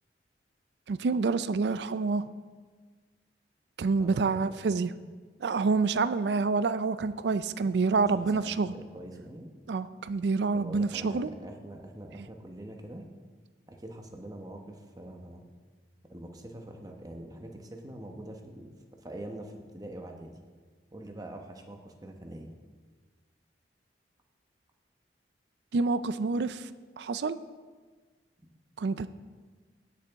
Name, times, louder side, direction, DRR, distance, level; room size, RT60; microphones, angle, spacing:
voice 1, 0.9-2.3 3.8-4.9 5.4-8.7 9.7-11.3 25.7-26.7 27.0-27.4 28.8-29.1, right 4 dB, 70° right, 14 dB, 0.4 m, -27 dB
voice 2, 4.0-4.6 8.0-9.5 10.5-13.1 13.7-15.5 16.1-18.7 19.0-20.3 20.9-22.5, right 1 dB, 20° right, 3 dB, 1.0 m, -44 dB
16.0 x 6.8 x 3.5 m, 1.4 s
head